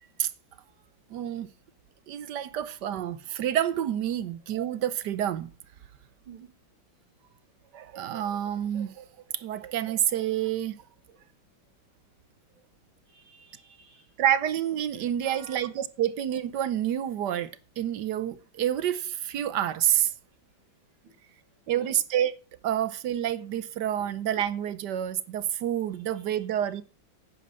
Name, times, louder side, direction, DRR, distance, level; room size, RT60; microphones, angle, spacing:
voice 1, 1.1-1.5 2.1-5.5 7.7-9.1 9.3-10.8 14.2-20.1 21.7-22.3 22.6-26.8, right 10 dB, 65° right, 1.3 m, -28 dB
voice 2, 13.1-14.1 14.9-15.7 21.7-21.9 24.0-24.1 26.1-26.4, right 5 dB, 85° right, 3.3 m, -52 dB
10.5 x 9.0 x 5.6 m
omnidirectional pair, 2.1 m